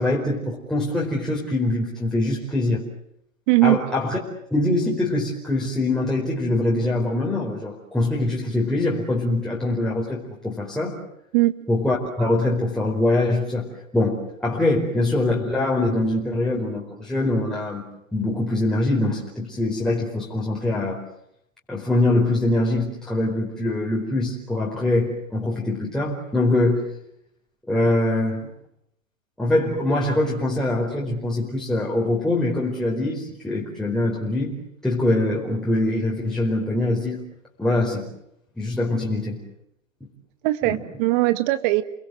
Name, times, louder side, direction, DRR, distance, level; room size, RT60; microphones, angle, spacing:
voice 1, 0.0-2.8 3.6-4.2 4.5-11.0 11.7-13.7 13.9-17.8 18.1-21.0 21.7-26.8 27.7-28.4 29.4-34.5 34.8-37.2 37.6-38.0 38.6-39.4 40.7-40.8, left 2 dB, ahead, -5 dB, 4.6 m, -23 dB
voice 2, 3.5-3.8 11.3-11.5 40.4-41.8, right 18 dB, 40° right, 12 dB, 1.9 m, -19 dB
30.0 x 21.0 x 7.9 m, 0.77 s
hypercardioid pair, 120°, 39 cm